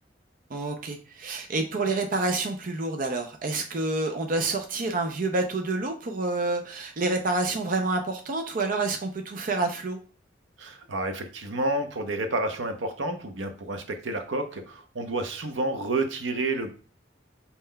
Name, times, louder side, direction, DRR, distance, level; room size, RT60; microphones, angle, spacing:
voice 1, 0.5-10.0, right 2 dB, 45° right, 4 dB, 0.5 m, -28 dB
voice 2, 10.6-16.7, right 2 dB, 85° right, 6 dB, 0.8 m, -30 dB
5.5 x 4.3 x 2.2 m, 0.39 s
head